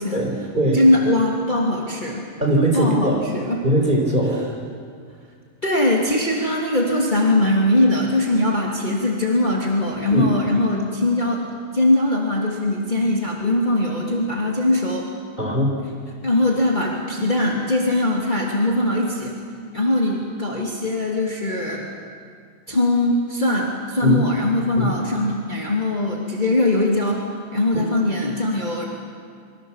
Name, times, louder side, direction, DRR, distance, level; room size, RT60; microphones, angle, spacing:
voice 1, 0.1-0.8 2.4-3.2 3.6-4.4 10.1-10.3 15.4-15.7 24.0-24.2 24.8-24.9 27.7-27.8, right 1 dB, 20° right, 1 dB, 4.3 m, -20 dB
voice 2, 0.7-2.2 2.7-3.6 5.6-11.5 11.7-15.1 16.2-19.3 19.7-21.9 22.7-27.2 27.5-28.8, left 1 dB, 20° left, -2 dB, 2.8 m, -21 dB
28.0 x 24.0 x 7.4 m, 2.1 s
omnidirectional pair, 2.4 m